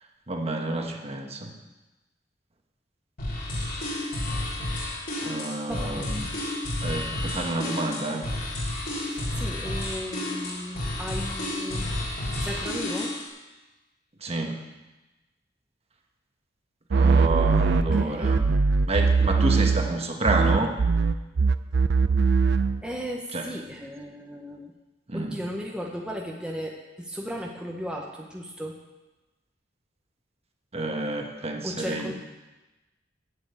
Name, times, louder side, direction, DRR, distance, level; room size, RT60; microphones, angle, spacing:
voice 1, 0.3-1.5 5.2-6.3 6.8-8.2 14.2-14.6 16.9-18.4 18.9-20.7 23.3-23.5 25.1-25.4 30.7-32.1, right 2 dB, 35° right, 3 dB, 1.2 m, -29 dB
sound 1, 3.2-13.3, left 1 dB, 50° left, 3.5 m, -31 dB
voice 2, 5.7-6.1 8.9-13.1 17.9-18.4 22.8-24.7 25.1-28.8 31.6-32.1, equal, 5° right, -1 dB, 0.8 m, -36 dB
sound 2, 16.9-20.0 20.2-22.8, right 4 dB, 60° right, 0.5 m, -21 dB
7.8 x 7.7 x 8.7 m, 1.1 s
head